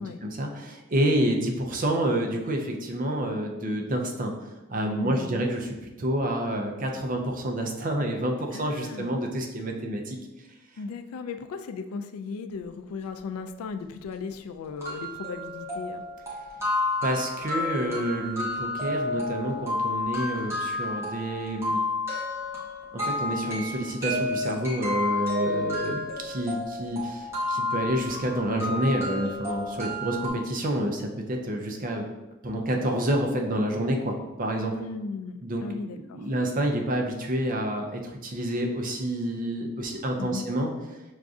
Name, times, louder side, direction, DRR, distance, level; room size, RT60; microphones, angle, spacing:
voice 1, 0.0-4.3 4.7-10.2 17.0-21.8 22.9-32.1 32.4-34.7 35.4-35.6 36.1-40.7, right 1 dB, 35° right, 2 dB, 0.5 m, -28 dB
voice 2, 4.8-5.4 8.5-9.2 10.8-16.0 34.8-36.3 40.2-40.4, left 4 dB, 75° left, 8 dB, 0.3 m, -36 dB
sound 1, 13.8-13.9 14.3-14.4 14.8-30.3, left 2 dB, 10° right, 1.0 m, -31 dB
6.2 x 2.5 x 2.3 m, 1.1 s
head